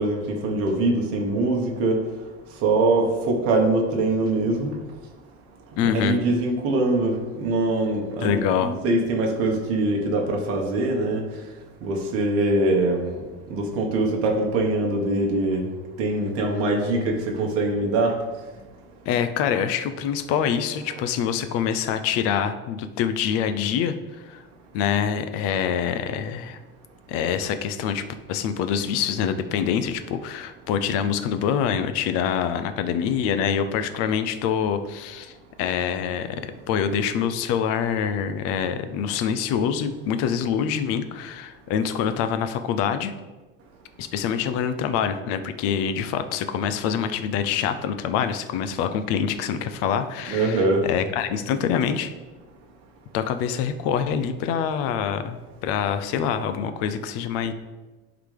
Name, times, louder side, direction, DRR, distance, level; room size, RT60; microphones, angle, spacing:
voice 1, 0.0-2.0 2.6-4.7 5.8-11.2 11.8-13.2 13.5-15.6 16.0-18.2 50.3-50.8, right 2 dB, 45° right, 1 dB, 1.3 m, -23 dB
voice 2, 5.8-6.2 8.2-8.8 19.1-24.4 24.7-26.6 27.1-43.1 44.0-52.1 53.1-57.5, left 8 dB, 50° left, 10 dB, 0.5 m, -25 dB
11.0 x 4.0 x 3.3 m, 1.2 s
cardioid pair, 170°, 31 cm